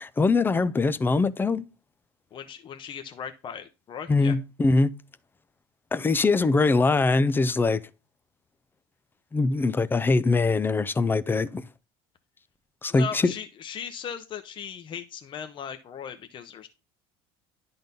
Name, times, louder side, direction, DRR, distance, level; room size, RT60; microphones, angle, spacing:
voice 1, 0.2-1.7 4.1-4.9 5.9-7.8 9.3-11.7 12.8-13.3, left 3 dB, 15° left, 0.5 m, -22 dB
voice 2, 2.3-4.4 12.9-16.7, left 7 dB, 40° left, 1.0 m, -38 dB
10.5 x 4.0 x 5.3 m
supercardioid pair, 105°, 13 cm